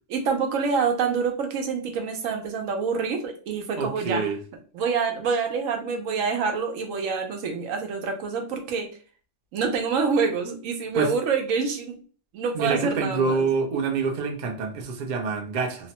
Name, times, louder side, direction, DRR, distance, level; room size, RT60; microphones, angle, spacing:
voice 1, 0.1-4.3 4.7-8.9 9.5-12.0 12.3-13.5, right 5 dB, 80° right, 1.0 m, -26 dB
voice 2, 3.8-4.4 10.9-11.1 12.5-15.9, right 4 dB, 55° right, 0.4 m, -26 dB
2.9 x 2.1 x 2.8 m
omnidirectional pair, 1.4 m